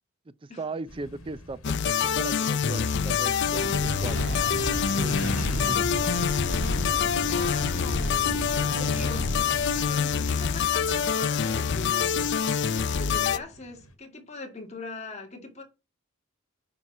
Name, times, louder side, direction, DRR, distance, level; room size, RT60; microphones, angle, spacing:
voice 1, 0.4-4.4 4.9-6.0, right 3 dB, 25° right, 0.4 m, -38 dB
sound 1, 0.9-13.9, left 1 dB, 90° left, 1.6 m, -43 dB
sound 2, 1.6-13.4, left 7 dB, 55° left, 0.5 m, -26 dB
sound 3, 3.5-11.0, right 1 dB, 70° right, 1.8 m, -35 dB
voice 2, 6.9-12.3 12.9-15.6, left 3 dB, 35° left, 2.1 m, -41 dB
9.7 x 4.5 x 5.9 m
head